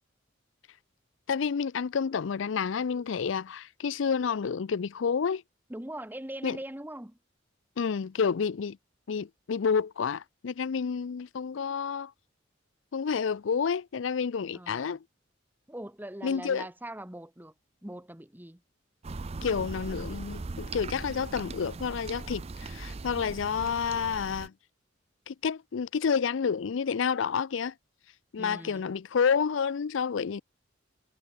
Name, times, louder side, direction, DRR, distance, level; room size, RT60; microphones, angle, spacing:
voice 1, 1.3-5.4 6.4-6.6 7.8-8.8 9.1-12.1 12.9-15.0 16.2-16.7 19.4-24.5 25.3-27.7 28.3-30.4, left 6 dB, 75° left, 0.5 m, -29 dB
voice 2, 5.7-7.2 14.5-15.0 15.7-17.5 17.8-18.6 28.4-28.8, right 1 dB, 10° right, 1.3 m, -41 dB
sound 1, 19.0-24.5, right 3 dB, 30° right, 0.5 m, -39 dB
head